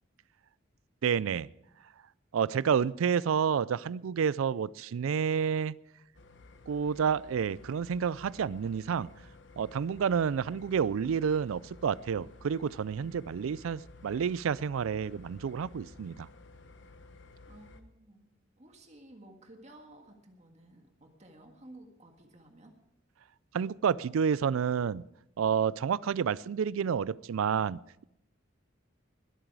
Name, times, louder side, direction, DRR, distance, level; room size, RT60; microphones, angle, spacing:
voice 1, 1.0-1.5 2.3-5.8 6.7-9.1 9.6-16.3 23.5-25.1 25.4-28.0, right 7 dB, 90° right, 21 dB, 0.4 m, -29 dB
sound 1, 6.1-17.8, left 3 dB, 60° left, 1.1 m, -54 dB
voice 2, 17.5-18.3 18.6-22.8, right 1 dB, 35° right, 4 dB, 1.7 m, -54 dB
20.5 x 8.9 x 4.7 m, 0.82 s
head